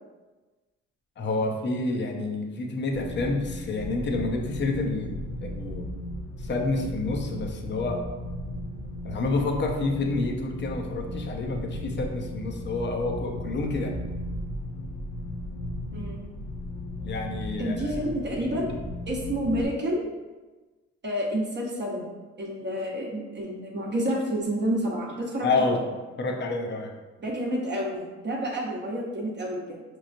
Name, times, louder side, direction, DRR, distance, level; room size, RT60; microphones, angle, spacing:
voice 1, 1.2-5.9 6.4-8.0 9.0-13.9 17.0-18.1 25.4-25.8 26.2-26.9, left 3 dB, 35° left, 2 dB, 0.6 m, -29 dB
sound 1, 2.9-19.6, left 1 dB, 85° left, 0.6 m, -36 dB
voice 2, 17.6-18.7 19.1-20.0 21.0-22.1 22.4-25.8 27.2-29.8, equal, 35° right, -2 dB, 0.9 m, -29 dB
5.4 x 3.0 x 2.5 m, 1.2 s
cardioid pair, 90°, 30 cm